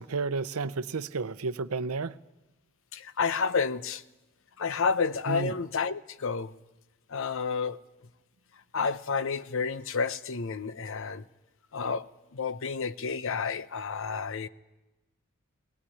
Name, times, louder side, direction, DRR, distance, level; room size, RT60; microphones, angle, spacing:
voice 1, 0.0-2.1 5.3-5.5, right 4 dB, 80° right, 0.7 m, -31 dB
voice 2, 2.9-4.0 4.6-6.5 7.1-7.8 8.7-11.2 11.7-12.1 12.3-14.5, left 5 dB, 60° left, 0.7 m, -30 dB
19.0 x 19.0 x 10.0 m
head